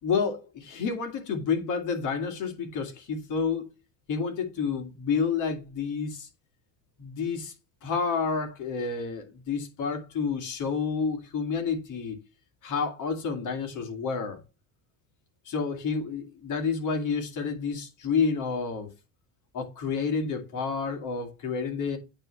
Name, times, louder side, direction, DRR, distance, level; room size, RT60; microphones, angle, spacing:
voice 1, 0.0-3.7 4.1-6.3 7.0-7.5 7.8-12.2 12.6-14.4 15.5-18.9 19.5-22.0, left 5 dB, 50° left, 2.3 m, -29 dB
8.7 x 3.3 x 5.8 m
cardioid pair, 115°, 38 cm